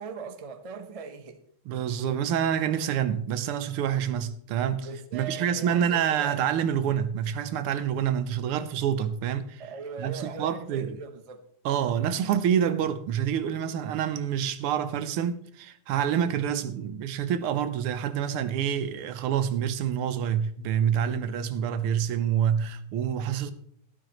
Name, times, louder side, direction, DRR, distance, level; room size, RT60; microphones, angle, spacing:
voice 1, 0.0-1.4 4.8-6.4 9.6-11.4, right 5 dB, 65° right, 0.3 m, -40 dB
voice 2, 1.6-9.6 10.0-11.0 11.6-23.5, right 9 dB, 90° right, 1.7 m, -27 dB
12.0 x 11.5 x 3.0 m
omnidirectional pair, 2.3 m